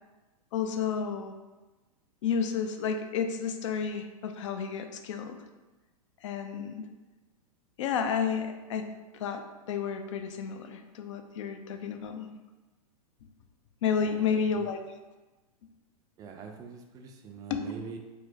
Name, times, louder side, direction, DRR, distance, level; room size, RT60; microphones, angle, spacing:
voice 1, 0.5-1.3 2.2-5.4 6.2-6.9 7.8-12.3 13.8-14.8 17.5-17.6, left 6 dB, 55° left, 7 dB, 0.4 m, -31 dB
voice 2, 14.0-14.7 16.2-18.0, right 5 dB, 20° right, 3 dB, 0.4 m, -44 dB
4.4 x 2.0 x 2.7 m, 1.2 s
figure-of-eight pair, 105°, 19 cm